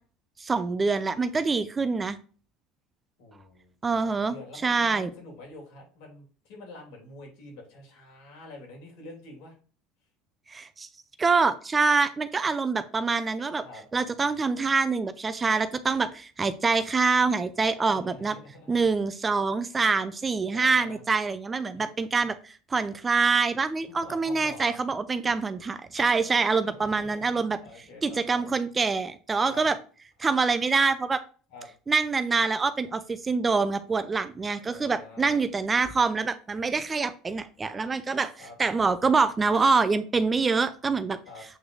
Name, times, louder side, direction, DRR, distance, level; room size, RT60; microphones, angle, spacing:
voice 1, 0.4-2.2 3.8-4.4 4.6-5.1 10.5-10.9 11.2-13.6 13.9-18.4 18.7-27.6 28.0-29.7 30.2-31.2 31.9-38.3 38.6-41.2, right 4 dB, 20° right, 11 dB, 0.4 m, -25 dB
voice 2, 3.2-9.5 13.6-13.8 17.9-18.9 20.5-21.0 21.7-21.9 23.8-24.8 26.6-28.5 29.5-29.6 31.5-31.7 34.6-35.4 38.4-38.5 41.3-41.4, left 2 dB, 75° left, 0 dB, 3.0 m, -47 dB
7.8 x 3.8 x 3.2 m, 0.39 s
cardioid pair, 140°, 0 cm